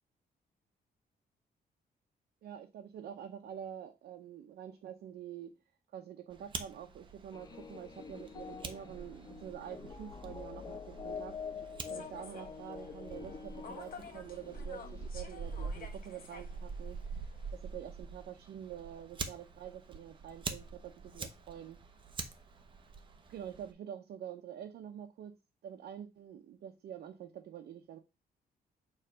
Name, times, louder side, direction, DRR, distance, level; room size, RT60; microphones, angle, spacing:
voice 1, 2.4-5.5 5.9-11.4 11.9-17.0 17.7-21.8 23.3-25.3 25.6-28.0, right 9 dB, 80° right, 0.8 m, -47 dB
Fire, 6.3-23.7, right 4 dB, 30° right, 0.8 m, -46 dB
sound 1, 7.3-15.1, left 6 dB, 25° left, 0.3 m, -46 dB
Human voice / Subway metro underground, 11.9-17.6, left 5 dB, 60° left, 1.3 m, -52 dB
6.7 x 3.3 x 5.0 m
wide cardioid pair, 165°, 16 cm